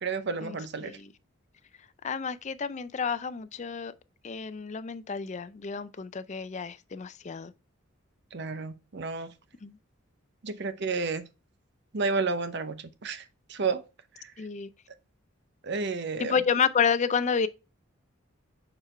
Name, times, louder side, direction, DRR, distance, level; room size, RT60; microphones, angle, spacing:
voice 1, 0.0-1.0 8.3-9.3 10.4-11.3 11.9-13.8 14.2-14.3 15.6-16.4, right 4 dB, 55° right, 0.7 m, -31 dB
voice 2, 0.8-1.1 2.0-3.9 4.2-7.5 9.6-9.8 14.4-14.7 16.2-17.5, left 6 dB, 35° left, 0.4 m, -30 dB
6.8 x 4.5 x 3.3 m
head